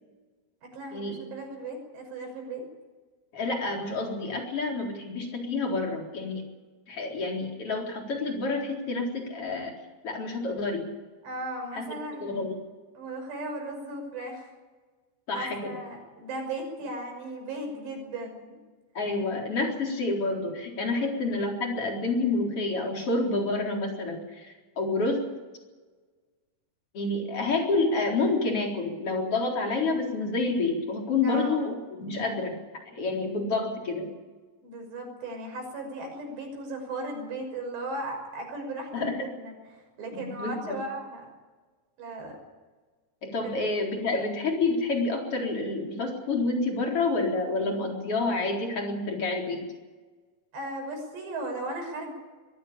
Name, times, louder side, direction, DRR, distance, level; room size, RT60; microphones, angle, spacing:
voice 1, 0.7-2.6 11.2-12.5 13.0-14.5 15.3-18.6 20.9-21.1 31.2-31.5 34.6-39.5 40.0-41.3 42.0-42.4 43.4-43.5 50.5-52.1, right 2 dB, 70° right, 2 dB, 8.1 m, -36 dB
voice 2, 3.3-6.4 6.9-9.7 10.0-10.8 11.7-11.9 12.2-12.6 15.3-15.7 18.9-25.2 26.9-32.6 32.8-34.1 38.9-39.1 40.1-40.8 43.2-49.6, left 3 dB, 30° left, 1 dB, 4.6 m, -28 dB
23.5 x 15.5 x 8.8 m, 1.3 s
omnidirectional pair, 5.2 m